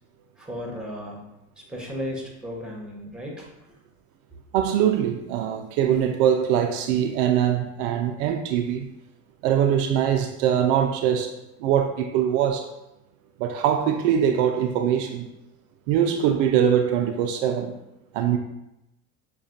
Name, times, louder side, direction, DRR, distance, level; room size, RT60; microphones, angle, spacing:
voice 1, 0.4-1.2 1.6-3.5, equal, ahead, -1 dB, 1.2 m, -35 dB
voice 2, 4.5-8.9 9.4-11.3 11.6-12.6 13.4-15.3 15.9-17.7 18.1-18.4, right 9 dB, 65° right, 5 dB, 0.5 m, -22 dB
5.8 x 2.3 x 2.7 m, 0.89 s
hypercardioid pair, 80°, 41 cm